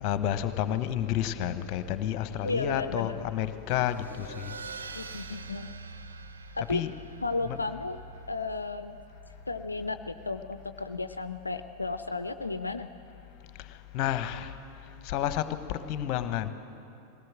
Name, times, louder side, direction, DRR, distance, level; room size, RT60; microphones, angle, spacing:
voice 1, 0.0-4.5 6.7-6.9 7.5-7.6 13.9-14.5 15.0-16.5, left 11 dB, 40° left, 11 dB, 1.1 m, -30 dB
voice 2, 2.4-3.3 5.0-5.7 6.6-6.8 7.2-8.0 8.3-9.0 9.5-12.9, left 3 dB, 80° left, 10 dB, 0.5 m, -33 dB
sound 1, 3.7-10.7, right 6 dB, 70° right, 0.7 m, -46 dB
20.5 x 18.0 x 7.5 m, 2.8 s
figure-of-eight pair, 90°, 0 cm